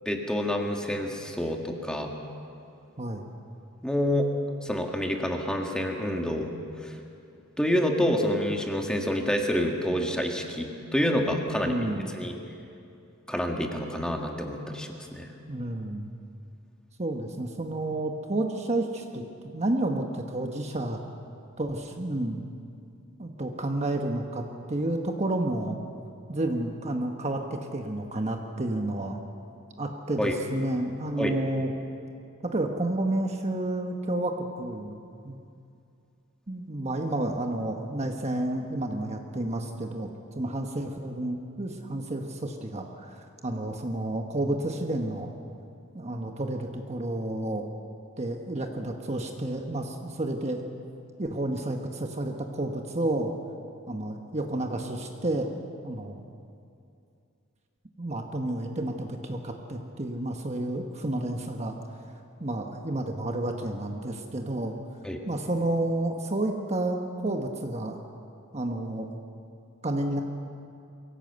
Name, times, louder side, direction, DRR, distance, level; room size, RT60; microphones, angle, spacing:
voice 1, 0.0-2.1 3.8-4.3 4.6-6.5 6.8-6.9 7.6-11.7 12.0-12.4 13.3-15.3 30.2-30.3 31.2-31.3 65.0-65.2, equal, 5° left, 2 dB, 1.7 m, -28 dB
voice 2, 3.0-3.3 11.5-12.1 15.5-16.1 17.0-21.0 21.6-22.4 23.2-25.8 26.3-29.2 29.8-31.7 32.4-35.0 35.2-35.4 36.5-40.1 40.3-45.3 45.9-47.7 48.2-50.7 51.2-53.3 53.9-55.5 55.8-56.2 58.0-61.7 62.4-64.8 65.3-68.0 68.5-69.1 69.8-70.2, right 1 dB, 30° right, 3 dB, 1.2 m, -30 dB
23.5 x 16.5 x 8.0 m, 2.5 s
head